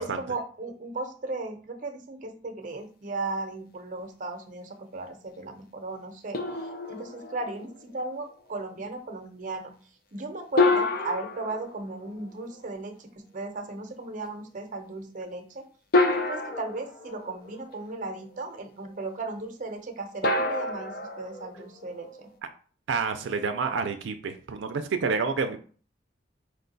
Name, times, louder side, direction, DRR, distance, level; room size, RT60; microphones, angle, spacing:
voice 1, 0.0-9.7 10.1-15.7 16.1-22.3, right 3 dB, 45° right, 5 dB, 0.7 m, -36 dB
sound 1, 6.3-7.8 10.6-12.6 14.3-14.4 15.9-17.8 20.2-22.3, left 2 dB, 50° left, 0.4 m, -28 dB
voice 2, 22.9-25.6, right 5 dB, 85° right, 7 dB, 0.4 m, -28 dB
4.8 x 2.2 x 3.9 m, 0.42 s
head